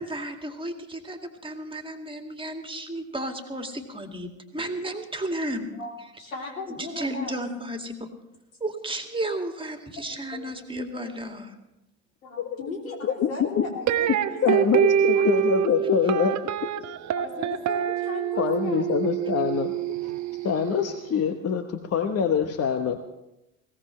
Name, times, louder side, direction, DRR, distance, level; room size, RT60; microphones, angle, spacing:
voice 1, 0.0-5.7 6.8-8.1 8.6-11.6, right 1 dB, 15° right, 5 dB, 2.2 m, -33 dB
voice 2, 5.8-7.4 10.3-10.8 12.2-14.6 15.1-15.5 17.1-18.9, left 3 dB, 85° left, 0 dB, 3.2 m, -37 dB
voice 3, 13.2-13.7 14.4-16.4 18.4-19.7 20.4-23.0, left 7 dB, 35° left, 7 dB, 1.1 m, -24 dB
sound 1, 13.9-21.0, right 9 dB, 45° right, 1.1 m, -25 dB
21.0 x 17.5 x 3.2 m, 0.91 s
hypercardioid pair, 70°, 40 cm